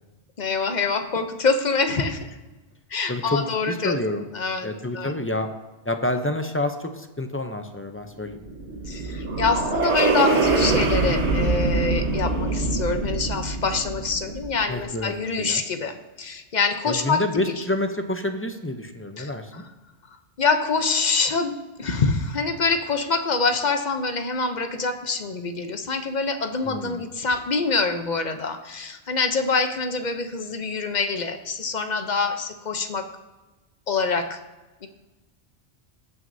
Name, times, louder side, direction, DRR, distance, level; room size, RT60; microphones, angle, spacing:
voice 1, 0.4-2.4 2.9-3.9 4.3-4.7 4.9-5.1 8.9-17.4 19.2-19.7 20.4-21.5 21.8-33.1 33.9-34.4 34.8-34.9, left 4 dB, 45° left, 7 dB, 0.8 m, -25 dB
voice 2, 3.1-4.2 4.6-5.5 5.9-8.4 14.7-15.6 16.8-19.5 26.6-27.0, left 1 dB, 20° left, 6 dB, 0.4 m, -28 dB
sound 1, 8.3-14.7, right 3 dB, 85° right, 1.4 m, -24 dB
18.0 x 6.2 x 2.7 m, 1.2 s
omnidirectional pair, 1.1 m